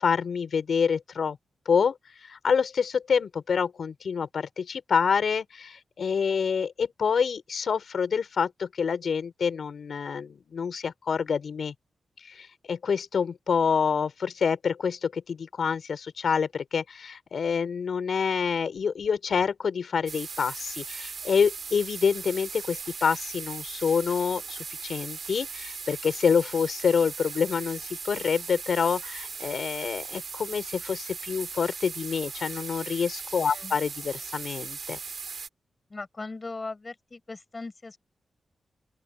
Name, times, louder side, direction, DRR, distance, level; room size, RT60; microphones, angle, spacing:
voice 1, 0.0-1.4 1.6-1.9 2.3-11.7 12.3-35.0, left 6 dB, 65° left, 4.6 m, -27 dB
sound 1, 20.1-35.5, right 5 dB, 55° right, 3.4 m, -38 dB
voice 2, 33.4-33.8 35.9-38.0, left 3 dB, 30° left, 7.5 m, -39 dB
open air
wide cardioid pair, 115°, 0 cm